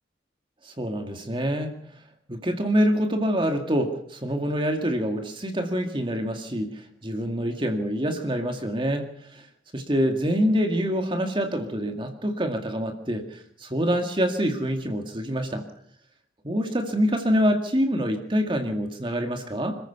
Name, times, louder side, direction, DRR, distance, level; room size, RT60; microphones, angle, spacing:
voice 1, 0.6-1.7 2.3-9.5 9.7-15.6 16.4-19.8, equal, 25° right, 4 dB, 2.1 m, -26 dB
27.0 x 14.5 x 7.0 m, 0.66 s
head